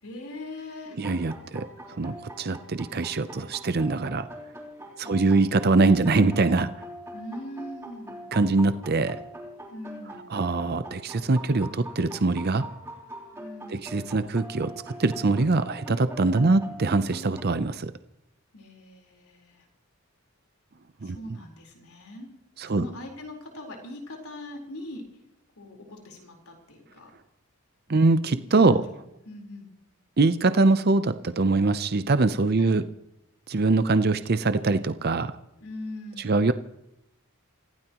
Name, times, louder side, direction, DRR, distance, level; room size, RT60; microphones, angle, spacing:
voice 1, 0.0-1.0 5.0-5.6 7.1-8.3 9.7-10.3 13.3-14.0 18.5-19.7 21.0-22.3 22.6-25.0 25.6-27.1 28.7-29.0 29.2-29.7 32.6-32.8 35.6-36.5, left 1 dB, 80° left, 1 dB, 4.2 m, -41 dB
sound 1, 1.0-17.4, equal, 10° right, 3.4 m, -43 dB
voice 2, 1.0-1.7 2.0-4.3 5.0-6.7 8.3-9.2 10.3-12.7 13.7-14.7 15.0-17.9 21.0-21.2 22.6-22.8 27.9-28.8 30.2-32.8 33.5-35.3 36.2-36.5, right 3 dB, 45° right, 12 dB, 0.6 m, -23 dB
27.5 x 15.5 x 3.0 m, 0.82 s
head